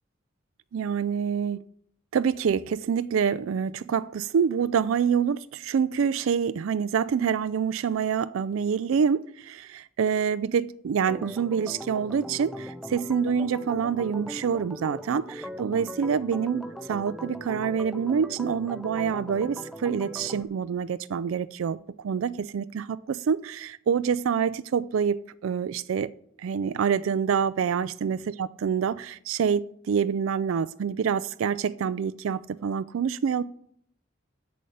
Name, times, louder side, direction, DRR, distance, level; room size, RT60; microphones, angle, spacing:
voice 1, 0.7-1.6 2.1-26.1 26.4-33.4, right 7 dB, 80° right, 0.4 m, -26 dB
Organ, 11.1-20.4, equal, ahead, 0.4 m, -39 dB
8.5 x 6.7 x 6.4 m
head